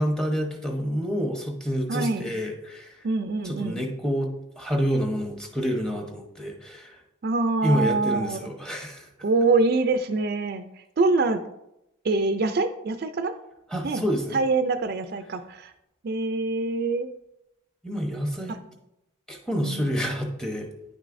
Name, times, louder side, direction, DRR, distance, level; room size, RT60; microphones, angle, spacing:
voice 1, 0.0-3.1 3.4-4.3 4.6-7.0 7.6-9.1 13.7-14.4 17.8-18.6 19.3-20.7, equal, 5° left, 2 dB, 0.9 m, -28 dB
voice 2, 1.9-2.3 3.0-3.7 7.2-8.4 9.2-10.6 11.0-11.4 12.0-13.3 13.8-14.0 14.3-15.7 16.0-17.1 18.5-18.6 19.6-19.8, right 3 dB, 50° right, 9 dB, 0.4 m, -24 dB
9.8 x 6.3 x 2.6 m, 0.87 s
head